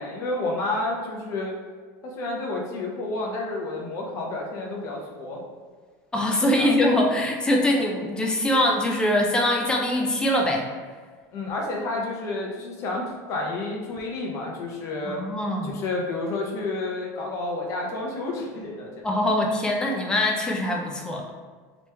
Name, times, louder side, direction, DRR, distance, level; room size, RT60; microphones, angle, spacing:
voice 1, 0.0-1.5 2.0-5.4 6.6-6.7 11.3-15.2 15.6-18.9, left 2 dB, 35° left, -1 dB, 0.8 m, -30 dB
voice 2, 6.1-10.7 15.1-15.7 19.0-21.2, left 1 dB, 10° left, 0 dB, 0.4 m, -23 dB
3.1 x 3.0 x 3.3 m, 1.5 s
cardioid pair, 160°, 9 cm